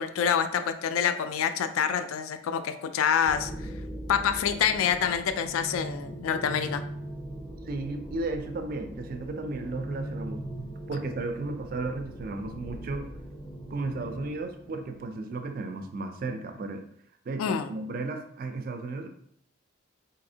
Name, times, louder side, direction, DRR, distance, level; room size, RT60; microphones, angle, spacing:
voice 1, 0.0-3.5 4.1-6.8 17.4-17.7, left 7 dB, 80° left, 10 dB, 0.3 m, -27 dB
sound 1, 3.2-15.2, right 1 dB, 15° left, 0.6 m, -40 dB
voice 2, 7.7-13.1 13.7-16.8 17.3-19.1, right 3 dB, 45° right, 6 dB, 0.3 m, -34 dB
4.1 x 2.8 x 2.7 m, 0.68 s
head